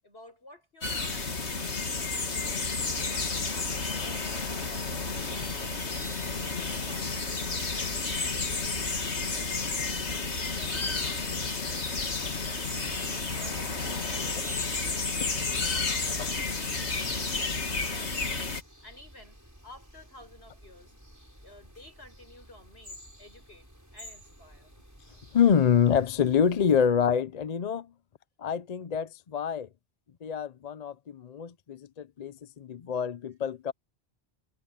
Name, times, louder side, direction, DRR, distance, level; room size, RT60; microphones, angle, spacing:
voice 1, 0.0-2.7 3.1-6.0 6.4-9.0 9.3-12.1 12.4-15.4 15.7-18.2 18.8-19.4 19.6-20.9 21.4-24.7, left 1 dB, 65° left, 7.0 m, -53 dB
sound 1, 0.8-18.6, left 4 dB, 85° left, 2.5 m, -31 dB
sound 2, 4.0-17.1, right 3 dB, 85° right, 2.4 m, -51 dB
sound 3, 7.2-26.9, equal, 15° right, 7.3 m, -51 dB
voice 2, 25.3-27.9 28.4-29.7 30.2-33.7, left 7 dB, 45° left, 0.6 m, -26 dB
omnidirectional pair, 1.1 m